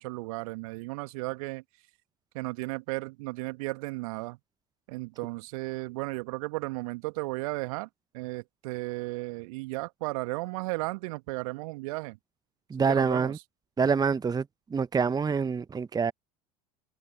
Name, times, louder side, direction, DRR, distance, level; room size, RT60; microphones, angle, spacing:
voice 1, 0.0-1.6 2.3-4.4 4.9-7.9 8.1-12.2 12.8-13.4, right 24 dB, 60° right, 1.8 m, -34 dB
voice 2, 12.7-13.4 13.8-14.4 14.7-16.1, right 5 dB, 20° right, 1.1 m, -26 dB
figure-of-eight pair, 70°, 20 cm